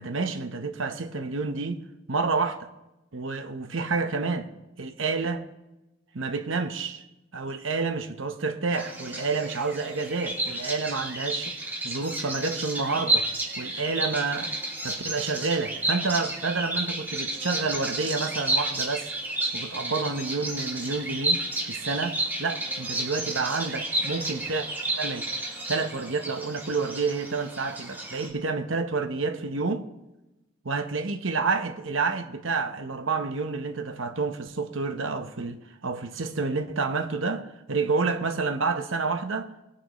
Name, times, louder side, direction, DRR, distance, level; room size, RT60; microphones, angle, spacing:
voice 1, 0.0-1.8 2.1-2.7 3.1-4.5 4.8-5.4 6.1-7.0 7.3-13.3 13.6-14.5 14.8-19.1 19.5-24.7 25.0-25.3 25.7-29.8 30.6-39.5, right 4 dB, 80° right, 1.0 m, -29 dB
Bird vocalization bird call bird song, 8.7-28.3, right 2 dB, 10° right, 2.7 m, -31 dB
21.0 x 9.8 x 3.1 m
head